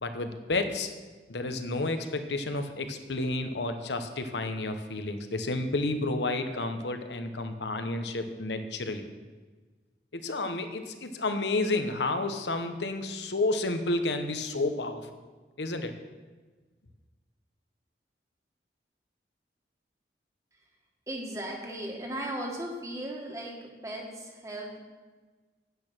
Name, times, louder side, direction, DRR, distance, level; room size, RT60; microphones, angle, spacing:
voice 1, 0.0-0.9 1.3-9.0 10.1-15.1 15.6-15.9, left 2 dB, 85° left, 8 dB, 1.0 m, -31 dB
voice 2, 21.1-24.8, right 1 dB, 20° right, 0 dB, 1.7 m, -37 dB
9.4 x 8.7 x 6.1 m, 1.3 s
head